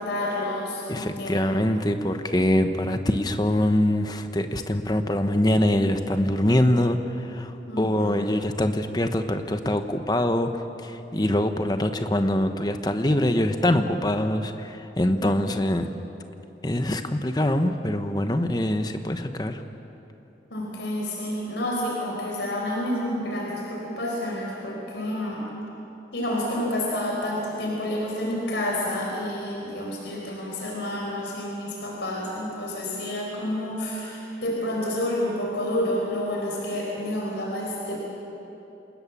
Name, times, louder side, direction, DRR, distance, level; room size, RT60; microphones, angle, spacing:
voice 1, 0.0-1.6 7.7-8.1 15.1-15.3 20.5-25.4 26.1-38.0, left 1 dB, 85° left, -2 dB, 4.5 m, -29 dB
voice 2, 0.9-15.9 16.6-19.6, left 1 dB, 20° left, 7 dB, 1.0 m, -24 dB
27.0 x 19.5 x 7.3 m, 3.0 s
head